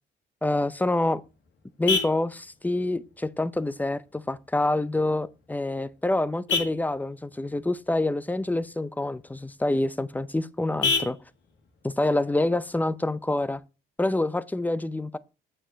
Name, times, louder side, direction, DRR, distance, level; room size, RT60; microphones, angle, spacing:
voice 1, 0.4-1.2 1.8-11.2 11.8-13.6 14.0-15.2, left 2 dB, 10° left, 0.5 m, -27 dB
Vehicle horn car horn honking, 0.6-13.6, left 4 dB, 70° left, 2.0 m, -36 dB
8.8 x 4.7 x 5.1 m
cardioid pair, 90°, 20 cm